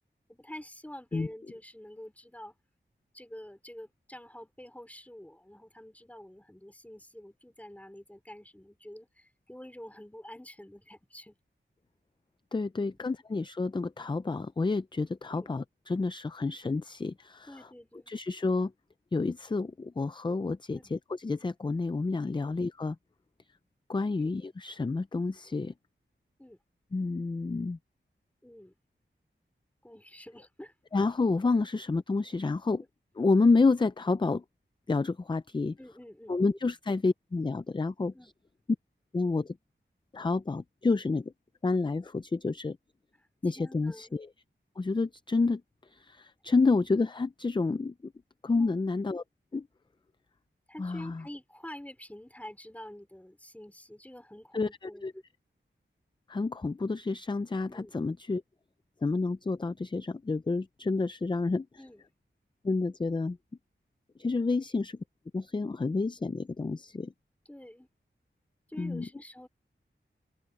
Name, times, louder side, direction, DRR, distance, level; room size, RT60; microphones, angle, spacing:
voice 1, 0.3-2.5 3.1-11.4 12.8-13.0 15.3-15.5 17.5-18.1 20.7-20.9 22.4-22.5 24.2-24.3 26.4-26.6 28.4-28.7 29.8-30.7 35.8-36.6 38.1-38.3 43.6-44.1 48.5-48.9 50.7-55.2 57.7-58.0 61.8-62.0 64.5-64.6 67.4-67.9 68.7-69.5, left 1 dB, 5° left, 2.9 m, -47 dB
voice 2, 12.5-17.7 18.1-18.7 19.1-22.9 23.9-25.7 26.9-27.8 30.9-32.8 33.2-34.4 34.9-35.8 36.3-38.3 39.1-39.6 40.1-41.3 41.6-42.8 43.4-44.3 44.8-48.1 48.4-49.2 49.5-49.7 50.8-51.2 54.5-55.1 56.3-58.4 59.0-61.7 62.6-63.4 64.2-65.0 65.3-67.1 68.8-69.1, left 3 dB, 25° left, 0.4 m, -29 dB
open air
wide cardioid pair, 90°, 20 cm